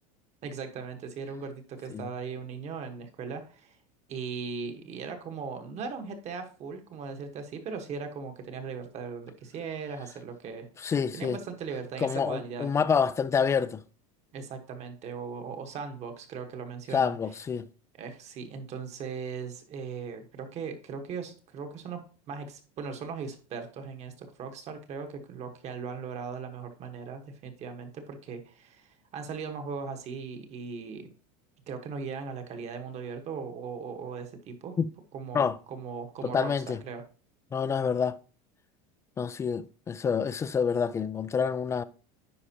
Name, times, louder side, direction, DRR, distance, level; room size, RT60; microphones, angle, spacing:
voice 1, 0.4-3.8 4.1-10.7 11.1-12.7 14.3-17.2 17.9-31.1 31.7-34.8 35.1-37.0, right 5 dB, 40° right, 1.3 m, -38 dB
voice 2, 10.8-11.4 12.0-13.8 16.9-17.7 34.8-34.9 35.3-35.6 36.2-36.8 37.5-38.2 39.2-41.8, left 6 dB, 15° left, 0.3 m, -27 dB
9.8 x 4.8 x 2.9 m
supercardioid pair, 135°, 18 cm